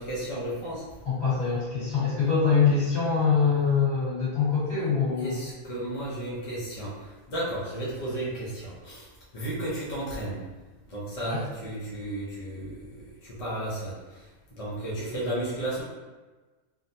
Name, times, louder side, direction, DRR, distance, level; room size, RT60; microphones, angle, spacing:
voice 1, 0.0-0.9 5.2-9.1 9.3-10.4 10.9-12.9 13.2-14.0 14.6-15.8, right 1 dB, 35° left, -7 dB, 0.6 m, -33 dB
voice 2, 1.0-5.3 11.2-11.4, left 5 dB, 50° left, -10 dB, 1.9 m, -24 dB
3.6 x 2.1 x 2.7 m, 1.3 s
omnidirectional pair, 1.4 m